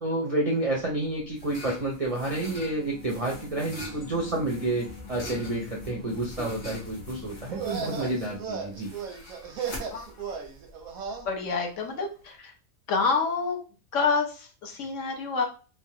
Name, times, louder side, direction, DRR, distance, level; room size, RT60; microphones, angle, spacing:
voice 1, 0.0-8.9, right 2 dB, 45° right, -2 dB, 0.4 m, -29 dB
sound 1, 1.1-11.3, left 1 dB, 40° left, 1.1 m, -44 dB
sound 2, 2.0-8.1, left 4 dB, 20° left, 0.7 m, -45 dB
sound 3, 7.4-11.3, right 6 dB, 90° right, 1.1 m, -36 dB
voice 2, 11.2-12.5 12.9-13.6 13.9-15.5, left 4 dB, 65° left, 3 dB, 1.0 m, -27 dB
3.3 x 2.0 x 2.7 m, 0.34 s
omnidirectional pair, 1.4 m